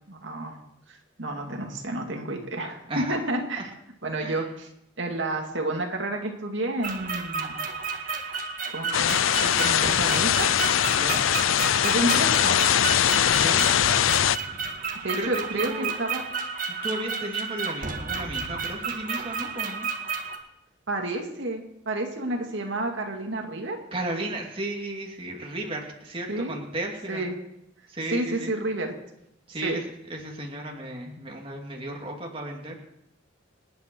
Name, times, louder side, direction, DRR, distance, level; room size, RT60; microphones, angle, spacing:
voice 1, 0.1-0.6 0.9-3.7 4.0-4.4 5.0-7.6 8.7-10.5 11.8-12.6 15.0-16.2 20.9-23.8 26.3-26.5 27.1-27.3 28.1-28.9 29.6-29.8, right 2 dB, 65° right, 2 dB, 2.3 m, -30 dB
voice 2, 2.9-3.2 3.6-3.7 4.2-4.5 10.9-11.2 13.3-13.7 15.1-15.9 16.7-19.9 23.9-27.3 27.9-28.5 29.5-32.8, right 1 dB, 30° right, 0 dB, 2.4 m, -34 dB
sound 1, 6.8-20.4, right 5 dB, 45° right, 1.9 m, -32 dB
sound 2, 8.9-14.4, left 10 dB, 85° left, 0.5 m, -22 dB
27.5 x 9.6 x 4.6 m, 0.81 s
head